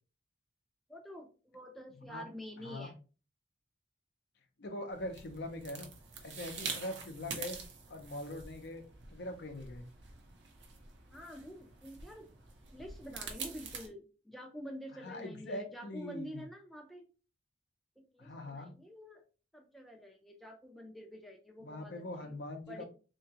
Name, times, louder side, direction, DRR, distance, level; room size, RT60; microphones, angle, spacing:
voice 1, 0.9-3.0 11.1-12.3 12.7-17.1 18.0-19.2 19.5-22.4 22.7-22.8, equal, ahead, 1 dB, 0.5 m, -48 dB
voice 2, 2.6-2.9 4.6-5.9 6.2-7.6 7.9-8.8 9.1-9.8 14.9-16.4 18.2-18.8 21.6-22.8, left 1 dB, 60° left, 5 dB, 0.6 m, -42 dB
sound 1, 4.9-13.9, right 5 dB, 65° right, 0.7 m, -46 dB
3.4 x 2.9 x 2.8 m, 0.35 s
head